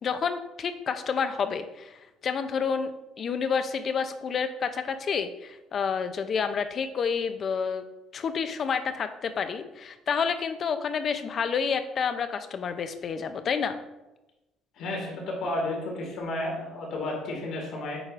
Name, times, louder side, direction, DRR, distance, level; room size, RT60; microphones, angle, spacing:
voice 1, 0.0-2.9 3.2-7.8 8.1-13.8, left 6 dB, 45° left, 10 dB, 0.5 m, -29 dB
voice 2, 14.8-18.0, left 1 dB, 65° left, -1 dB, 2.0 m, -32 dB
8.6 x 4.7 x 2.5 m, 1.0 s
cardioid pair, 110°, 0 cm